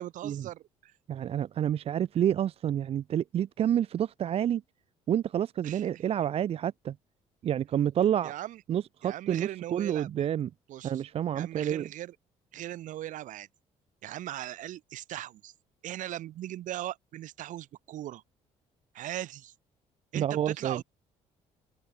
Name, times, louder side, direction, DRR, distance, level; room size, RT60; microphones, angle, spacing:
voice 1, 0.0-0.9 5.6-6.0 8.2-8.6 9.0-10.3 10.7-11.0 11.3-12.1 12.5-13.5 14.0-15.5 15.8-18.2 18.9-19.5 20.1-20.8, right 13 dB, 70° right, 1.9 m, -39 dB
voice 2, 1.1-4.6 5.1-7.0 7.4-8.3 8.7-10.5 10.8-11.9 20.1-20.8, right 10 dB, 45° right, 0.5 m, -29 dB
open air
cardioid pair, 95°, 14 cm